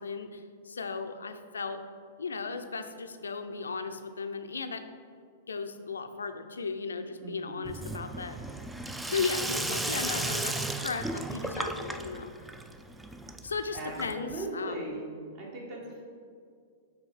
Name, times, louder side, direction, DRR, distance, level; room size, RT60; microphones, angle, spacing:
voice 1, 0.0-1.8 2.2-4.8 5.5-8.4 9.1-12.3 13.4-14.9, left 4 dB, 70° left, 9 dB, 0.4 m, -36 dB
voice 2, 7.2-7.7 13.7-15.1 15.3-16.0, right 2 dB, 45° right, -2 dB, 1.6 m, -39 dB
Sink (filling or washing), 7.6-14.4, right 2 dB, 5° right, 0.3 m, -35 dB
5.6 x 3.8 x 5.4 m, 2.1 s
figure-of-eight pair, 100°, 0 cm